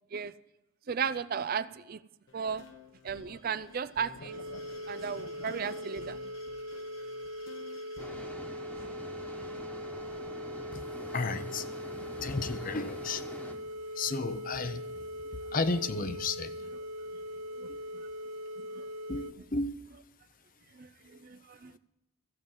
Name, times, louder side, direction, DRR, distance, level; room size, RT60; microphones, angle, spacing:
voice 1, 0.9-2.0 2.3-2.6 3.0-4.4 4.9-6.3 8.8-8.9 9.5-9.6 10.9-11.0 12.0-12.2 17.6-17.7 18.8-18.9 20.7-21.8, right 6 dB, 45° right, 0.4 m, -35 dB
sound 1, 2.3-8.3, left 4 dB, 70° left, 1.2 m, -51 dB
sound 2, 4.3-19.3, equal, 80° right, 0.7 m, -41 dB
sound 3, 8.0-13.5, equal, 5° left, 1.3 m, -46 dB
voice 2, 11.1-11.7 12.2-13.2 14.0-14.9 15.5-16.5 19.1-19.7, left 3 dB, 40° left, 0.7 m, -32 dB
14.5 x 7.9 x 7.3 m
head